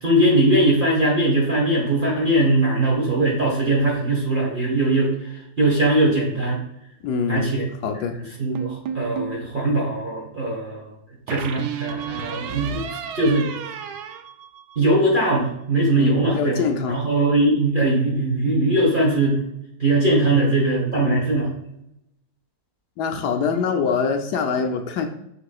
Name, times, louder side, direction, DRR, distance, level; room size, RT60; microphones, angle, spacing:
voice 1, 0.0-5.1 5.6-6.6 7.3-7.6 8.4-10.8 11.3-12.8 13.1-13.5 14.7-16.6 16.9-19.4 19.8-21.5, right 1 dB, 30° right, -4 dB, 1.6 m, -20 dB
voice 2, 7.0-7.6 7.8-8.2 16.0-17.0 20.9-21.2 23.0-25.1, left 5 dB, 70° left, 5 dB, 1.2 m, -24 dB
sound 1, 8.6-9.4 11.3-15.1, right 7 dB, 70° right, 1.1 m, -32 dB
6.8 x 6.3 x 2.4 m, 0.80 s
omnidirectional pair, 2.0 m